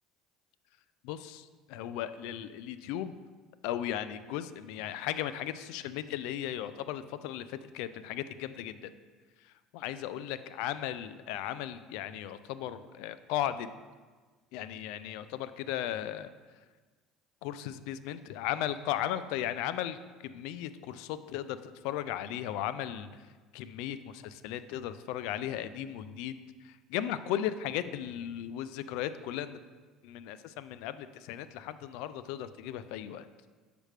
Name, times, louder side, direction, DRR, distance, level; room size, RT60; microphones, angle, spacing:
voice 1, 1.0-3.1 3.6-8.9 9.4-13.7 14.5-16.3 17.4-23.3 23.5-29.6 30.0-33.3, left 11 dB, 80° left, 13 dB, 0.3 m, -36 dB
7.4 x 5.0 x 3.3 m, 1.4 s
supercardioid pair, 105°, 0 cm